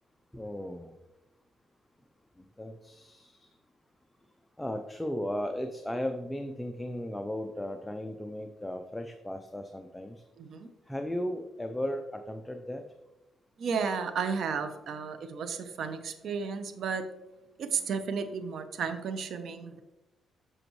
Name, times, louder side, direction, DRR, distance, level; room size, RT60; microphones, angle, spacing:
voice 1, 0.3-0.9 2.4-3.5 4.6-10.2 10.9-12.8, left 1 dB, 5° left, 6 dB, 0.5 m, -36 dB
voice 2, 10.4-10.7 13.6-17.0 17.6-19.8, right 5 dB, 65° right, 9 dB, 0.8 m, -33 dB
7.9 x 6.0 x 3.1 m, 1.0 s
cardioid pair, 90°, 0 cm